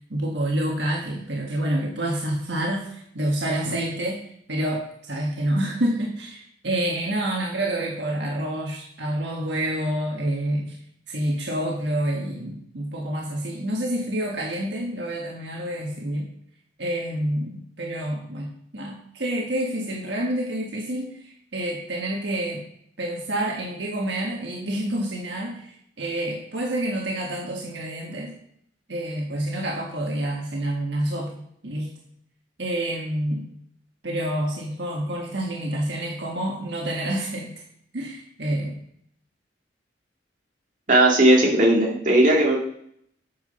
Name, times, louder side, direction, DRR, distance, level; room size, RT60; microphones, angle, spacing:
voice 1, 0.1-4.2 4.5-10.8 11.1-16.3 16.8-18.5 18.7-22.6 23.0-28.3 28.9-31.9 32.6-33.4 34.0-37.5 37.9-38.7, right 1 dB, 65° right, -1 dB, 1.6 m, -28 dB
voice 2, 40.9-42.6, right 1 dB, 45° right, -2 dB, 2.0 m, -17 dB
8.5 x 5.9 x 5.5 m, 0.68 s
head